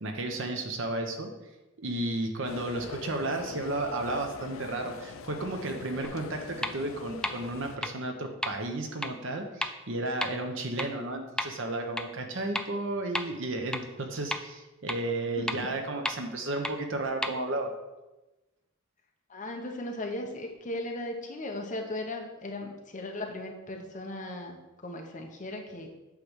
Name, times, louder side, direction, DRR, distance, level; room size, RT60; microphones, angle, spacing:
voice 1, 0.0-1.3 1.8-17.7, right 2 dB, 65° right, 4 dB, 1.0 m, -33 dB
sound 1, 2.4-7.8, left 4 dB, 70° left, 0.5 m, -43 dB
sound 2, 6.0-6.1 6.6-6.7 7.2-7.3 7.8-7.9 8.4-8.5 9.0-9.1 9.6-9.7 10.2-10.3 10.8-10.9 11.4-11.5 12.0-12.1 12.6-12.7 13.1-13.2 13.7-13.8 14.3-14.4 14.9-15.0 15.5-15.6 16.1-16.2 16.6-16.7 17.2-17.3, left 1 dB, 5° left, 0.3 m, -30 dB
voice 2, 15.4-15.7 19.3-25.9, left 1 dB, 40° left, 2 dB, 1.1 m, -37 dB
8.3 x 3.4 x 6.3 m, 1.0 s
head